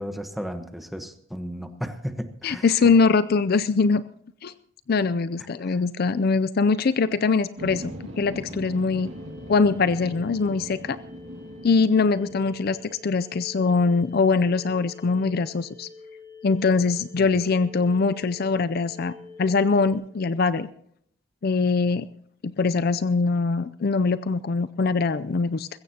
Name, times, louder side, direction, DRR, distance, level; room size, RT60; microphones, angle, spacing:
voice 1, 0.0-2.6 5.6-5.8 17.2-17.3, equal, ahead, 7 dB, 1.1 m, -34 dB
voice 2, 2.4-4.0 4.4-4.5 4.9-9.1 9.5-11.0 11.6-15.9 16.4-19.1 19.4-20.7 21.4-22.1 22.4-25.7, left 4 dB, 50° left, 14 dB, 0.4 m, -22 dB
sound 1, 7.6-13.0, right 1 dB, 70° right, 2.2 m, -40 dB
sound 2, 9.1-20.0, left 3 dB, 30° left, 6.6 m, -47 dB
21.0 x 16.0 x 2.8 m, 0.67 s
head